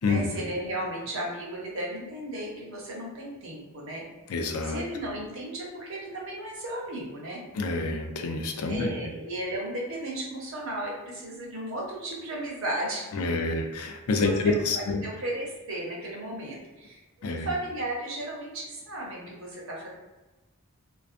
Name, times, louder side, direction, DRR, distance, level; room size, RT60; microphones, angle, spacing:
voice 1, 0.0-4.1 4.6-7.4 8.7-13.1 14.2-14.6 15.0-19.9, right 1 dB, 65° right, -3 dB, 0.8 m, -35 dB
voice 2, 4.3-4.8 7.5-8.9 13.1-15.0 17.2-17.5, left 3 dB, 85° left, 4 dB, 0.4 m, -27 dB
2.5 x 2.2 x 2.4 m, 1.1 s
head